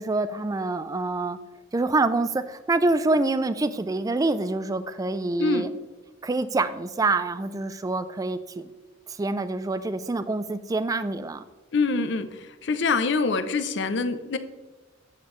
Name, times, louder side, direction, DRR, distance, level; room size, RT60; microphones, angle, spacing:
voice 1, 0.0-1.4 1.7-5.7 6.2-8.7 9.1-11.4, right 2 dB, 15° right, 12 dB, 0.3 m, -26 dB
voice 2, 11.7-14.4, left 4 dB, 60° left, 10 dB, 0.5 m, -25 dB
8.1 x 7.0 x 3.1 m, 1.2 s
head